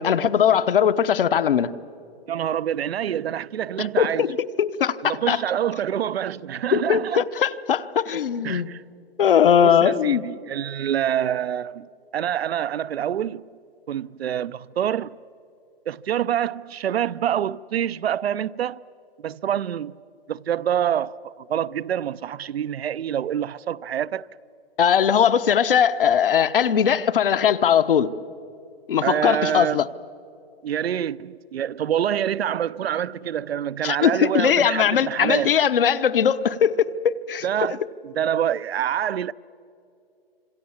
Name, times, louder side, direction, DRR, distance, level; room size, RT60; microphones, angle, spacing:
voice 1, 0.0-1.7 3.8-5.4 6.7-8.7 9.2-10.2 24.8-28.1 28.9-29.8 33.8-37.4, left 8 dB, 60° left, 1.0 m, -20 dB
voice 2, 2.3-4.3 5.0-7.2 8.4-8.8 9.6-11.9 12.1-13.4 13.9-15.1 15.9-18.8 19.2-19.9 20.3-24.3 29.0-29.8 30.6-35.6 37.4-39.3, right 10 dB, 80° right, 0.6 m, -26 dB
29.0 x 26.5 x 7.2 m
hypercardioid pair, 170°, 30 cm